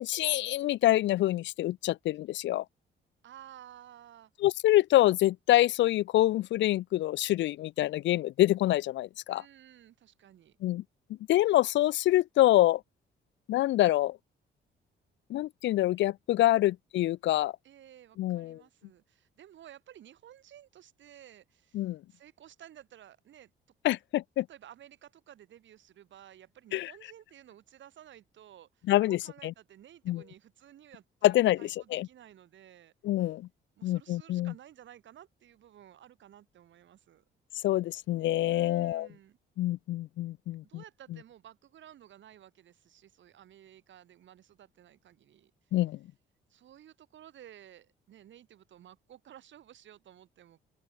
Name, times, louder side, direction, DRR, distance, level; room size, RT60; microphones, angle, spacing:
voice 1, 0.0-2.6 4.4-9.4 10.6-10.8 11.3-12.8 13.5-14.2 15.3-17.5 18.2-18.6 21.7-22.0 23.8-24.4 26.7-26.9 28.9-29.2 30.1-30.2 31.2-32.1 33.0-33.5 33.8-34.5 37.6-39.1 39.6-40.6 45.7-46.0, left 15 dB, 70° left, 0.4 m, -26 dB
voice 2, 3.2-4.3 9.3-10.6 16.6-16.8 17.6-23.5 24.5-32.9 33.8-37.2 38.5-39.4 40.6-45.7 46.5-50.6, right 11 dB, 70° right, 4.5 m, -54 dB
cardioid pair, 90°, 20 cm